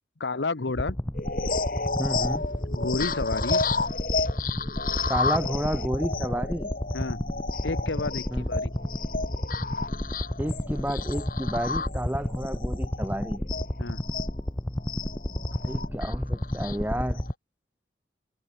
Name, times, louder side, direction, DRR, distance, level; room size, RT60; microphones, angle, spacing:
voice 1, 0.2-1.0 2.7-3.6 6.9-7.2 7.6-8.7 13.8-14.0, left 3 dB, 85° left, 1.0 m, -31 dB
sound 1, 0.7-17.3, left 1 dB, 15° left, 0.7 m, -31 dB
sound 2, 1.1-14.3 14.8-17.3, left 4 dB, 50° left, 2.5 m, -32 dB
voice 2, 2.0-2.6 5.1-6.7 8.3-8.5 10.4-13.4 15.3-17.2, right 1 dB, 10° right, 1.3 m, -31 dB
head